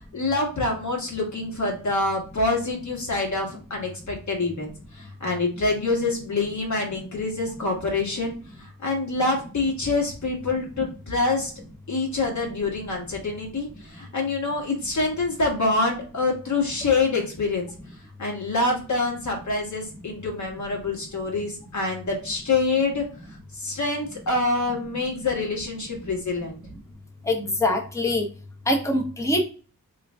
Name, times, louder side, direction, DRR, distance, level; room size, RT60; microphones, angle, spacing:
voice 1, 0.1-11.5 11.9-17.7 18.2-26.6, left 3 dB, 55° left, 0 dB, 1.4 m, -26 dB
voice 2, 27.3-28.2 28.7-29.4, left 1 dB, 10° left, 1 dB, 0.8 m, -23 dB
3.7 x 2.5 x 3.3 m, 0.38 s
wide cardioid pair, 85°, 35 cm